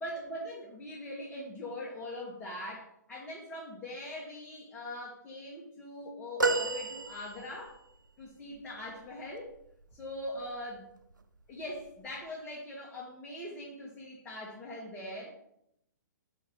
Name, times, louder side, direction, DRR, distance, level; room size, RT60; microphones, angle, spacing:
voice 1, 0.0-7.8 8.2-9.5 9.9-10.9 11.5-15.3, left 1 dB, 15° left, -5 dB, 1.3 m, -42 dB
sound 1, 6.4-7.8 10.2-10.4 11.7-11.8, right 3 dB, 80° right, 0.6 m, -31 dB
4.6 x 4.5 x 5.2 m, 0.76 s
figure-of-eight pair, 120°, 10 cm